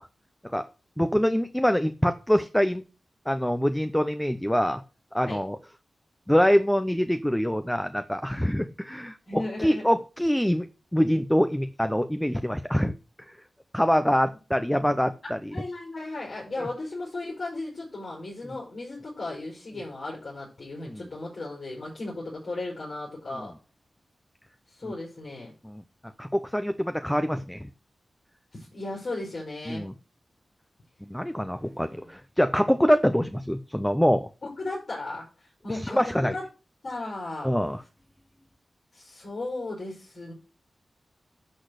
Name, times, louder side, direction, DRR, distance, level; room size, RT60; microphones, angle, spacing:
voice 1, 1.0-2.8 3.3-4.8 5.1-5.6 6.3-12.9 13.7-15.6 16.6-16.7 20.9-21.0 23.4-23.5 24.8-24.9 25.6-25.8 26.2-27.7 29.7-29.9 31.1-34.3 35.7-36.3 37.4-37.8, equal, 5° left, 10 dB, 0.7 m, -25 dB
voice 2, 9.3-9.8 15.5-23.5 24.7-25.5 28.5-29.9 32.6-32.8 34.4-36.4 36.8-37.5 38.9-40.3, left 2 dB, 60° left, -4 dB, 5.4 m, -36 dB
11.5 x 4.1 x 6.5 m, 0.34 s
cardioid pair, 65°, 0 cm